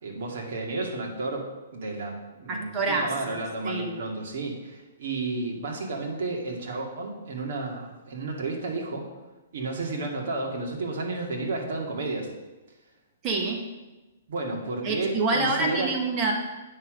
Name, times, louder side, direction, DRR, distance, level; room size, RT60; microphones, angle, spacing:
voice 1, 0.0-1.5 1.7-9.1 9.5-12.3 14.3-15.9, right 3 dB, 60° right, 0 dB, 2.2 m, -32 dB
voice 2, 2.5-3.4 3.6-4.0 13.2-13.6 14.8-16.3, right 3 dB, 25° right, 1 dB, 1.4 m, -27 dB
8.7 x 6.6 x 5.1 m, 1.1 s
hypercardioid pair, 160°, 0 cm